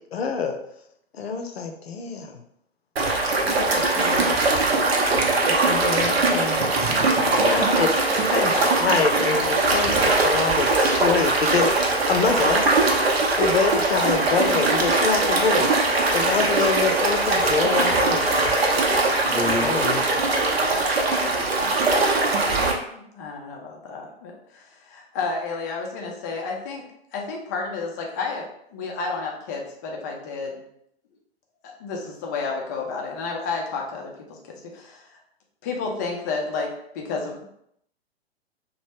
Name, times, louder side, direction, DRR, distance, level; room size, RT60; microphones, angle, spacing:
voice 1, 0.1-0.6 1.1-2.4 3.4-4.3 5.4-6.7 7.5-7.9 8.2-12.7 13.4-15.7 16.1-18.4 19.6-20.0, left 5 dB, 70° left, 5 dB, 0.6 m, -26 dB
sound 1, 3.0-22.7, right 2 dB, 65° right, 0.7 m, -21 dB
voice 2, 6.6-8.0 8.3-8.5 19.2-20.8, left 1 dB, 10° right, -6 dB, 0.8 m, -33 dB
voice 3, 22.9-26.8 27.1-28.5 28.7-30.6 31.8-34.1 34.5-35.2 35.6-37.5, left 4 dB, 20° left, 0 dB, 0.3 m, -31 dB
2.9 x 2.1 x 3.3 m, 0.73 s
figure-of-eight pair, 110°, 32 cm